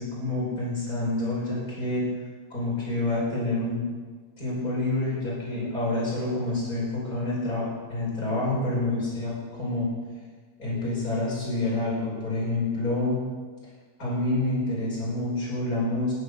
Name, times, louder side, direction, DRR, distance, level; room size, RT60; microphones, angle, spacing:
voice 1, 0.0-2.1 2.5-3.9 4.4-9.9 10.6-13.2 14.0-16.1, left 2 dB, 65° left, -7 dB, 6.6 m, -28 dB
15.0 x 10.0 x 6.8 m, 1.5 s
omnidirectional pair, 1.7 m